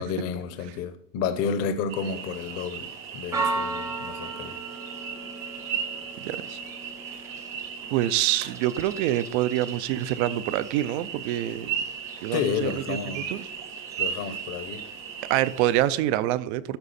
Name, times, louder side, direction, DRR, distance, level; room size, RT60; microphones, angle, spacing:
voice 1, 0.0-4.6 12.3-13.3 14.0-14.8, left 6 dB, 40° left, 0.8 m, -31 dB
sound 1, 1.9-15.8, right 7 dB, 80° right, 2.2 m, -36 dB
Church bell, 2.3-16.1, right 3 dB, 10° right, 0.4 m, -39 dB
voice 2, 6.2-6.6 7.9-11.8 12.2-13.0 13.3-13.4 15.3-16.8, right 14 dB, 60° right, 0.6 m, -26 dB
13.5 x 4.8 x 4.2 m
cardioid pair, 175°, 38 cm